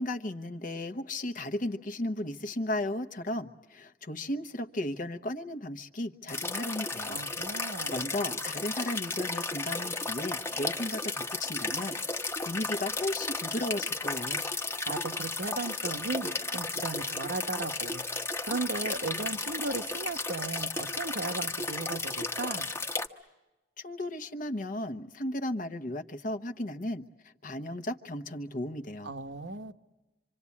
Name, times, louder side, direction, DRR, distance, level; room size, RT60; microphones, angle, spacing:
voice 1, 0.0-7.2 7.6-14.4 23.8-29.1, left 1 dB, 50° left, 1.0 m, -35 dB
sound 1, 6.3-23.1, left 3 dB, 15° left, 1.0 m, -34 dB
voice 2, 7.1-8.1 14.9-18.0 18.5-22.7 29.0-29.7, right 3 dB, 70° right, 1.1 m, -36 dB
26.5 x 26.0 x 8.4 m
head